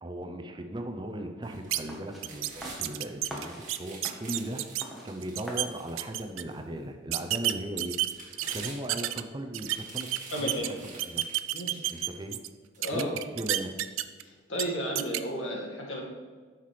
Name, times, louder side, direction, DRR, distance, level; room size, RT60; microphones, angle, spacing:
voice 1, 0.0-7.9 8.5-11.2 11.9-12.4 12.9-13.8, right 1 dB, 25° right, 5 dB, 0.5 m, -38 dB
sound 1, 1.4-2.8 3.2-6.6 7.1-7.2 7.8-9.2 9.6-12.2 12.7-12.8, right 3 dB, 40° right, 1.8 m, -48 dB
sound 2, 1.7-1.8 2.2-2.5 2.8-4.8 5.2-5.7 6.0-6.4 7.1-9.2 9.5-10.7 11.0-12.5 12.8-14.2 14.5-14.6 15.0-15.2, right 14 dB, 85° right, 0.4 m, -30 dB
sound 3, 1.9-6.9, equal, ahead, 1.1 m, -46 dB
voice 2, 10.3-10.7 11.5-11.8 12.8-13.2 14.2-16.0, equal, 85° left, -1 dB, 1.8 m, -33 dB
9.6 x 5.9 x 3.3 m, 1.5 s
head